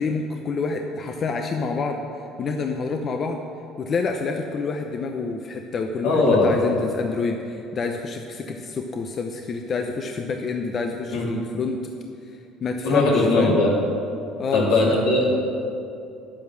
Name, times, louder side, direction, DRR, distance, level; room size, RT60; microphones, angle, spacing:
voice 1, 0.0-2.0 2.4-3.4 3.8-11.9 12.6-13.6 14.4-14.9, left 4 dB, 45° left, 4 dB, 0.7 m, -27 dB
voice 2, 6.0-6.6 11.1-11.3 12.8-13.7 14.5-15.3, left 2 dB, 85° left, -4 dB, 2.7 m, -19 dB
9.5 x 8.6 x 6.3 m, 2.6 s
supercardioid pair, 90°, 0 cm